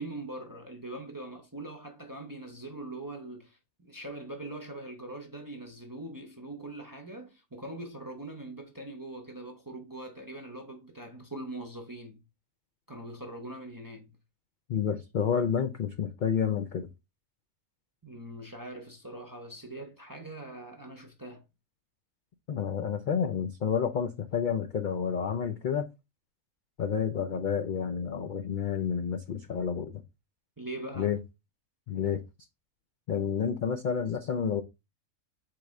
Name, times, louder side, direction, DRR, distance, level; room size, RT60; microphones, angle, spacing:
voice 1, 0.0-12.2 12.9-14.2 18.0-21.4 30.6-31.1, right 2 dB, 25° right, 0.5 m, -42 dB
voice 2, 14.7-16.9 22.5-25.9 26.8-30.0 31.0-31.2 31.9-32.2 33.1-34.6, left 7 dB, 75° left, 0.4 m, -29 dB
4.7 x 3.1 x 3.6 m
omnidirectional pair, 1.4 m